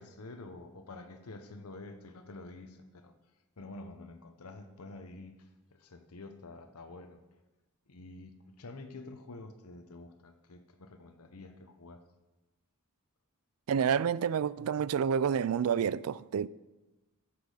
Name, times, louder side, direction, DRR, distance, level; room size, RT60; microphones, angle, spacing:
voice 1, 0.0-3.1 3.6-7.2 7.9-12.0, left 2 dB, 80° left, 0.8 m, -48 dB
voice 2, 13.7-16.5, right 7 dB, 70° right, 0.3 m, -29 dB
14.5 x 6.0 x 4.9 m
head